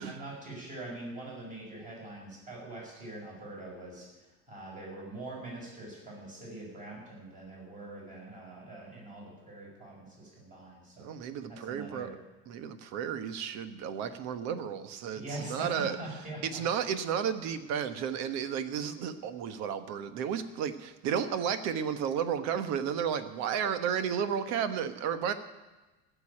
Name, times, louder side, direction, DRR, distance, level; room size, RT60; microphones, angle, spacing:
voice 1, 0.0-11.1 11.5-12.1 15.1-17.0, right 2 dB, 25° right, -3 dB, 6.0 m, -43 dB
voice 2, 11.0-12.1 12.5-16.0 16.4-25.3, right 8 dB, 60° right, 11 dB, 1.2 m, -33 dB
14.5 x 7.1 x 9.9 m, 1.1 s
cardioid pair, 160°, 31 cm